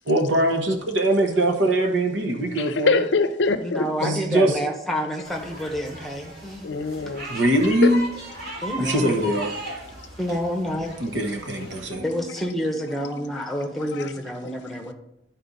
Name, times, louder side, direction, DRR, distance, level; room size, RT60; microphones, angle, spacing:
voice 1, 0.1-3.1 4.0-4.6 7.3-8.0 8.8-9.5 11.0-12.0, right 1 dB, 90° right, 1.1 m, -22 dB
voice 2, 2.5-4.1 6.6-7.3 7.8-8.0 8.4-8.6 9.0-9.3 11.5-12.3 13.2-14.1 14.4-14.9, left 4 dB, 75° left, 0.6 m, -26 dB
voice 3, 3.6-6.7 8.6-9.1 10.2-10.9 12.0-14.9, equal, ahead, 0.9 m, -28 dB
sound 1, 5.2-11.9, right 1 dB, 60° right, 2.8 m, -37 dB
11.0 x 4.3 x 4.0 m
head